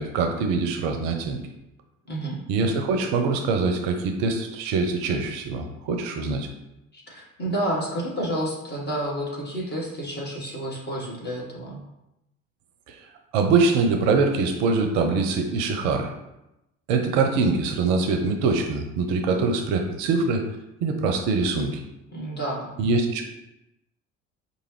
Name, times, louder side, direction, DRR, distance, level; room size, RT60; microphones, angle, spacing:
voice 1, 0.0-1.4 2.5-6.5 12.9-13.0 13.3-16.1 16.9-20.4 20.8-21.8 22.8-23.2, right 4 dB, 55° right, 4 dB, 0.6 m, -23 dB
voice 2, 2.1-2.4 6.9-11.8 22.1-22.7, right 1 dB, 25° left, -3 dB, 1.3 m, -30 dB
4.8 x 2.5 x 3.1 m, 0.90 s
figure-of-eight pair, 60°, 39 cm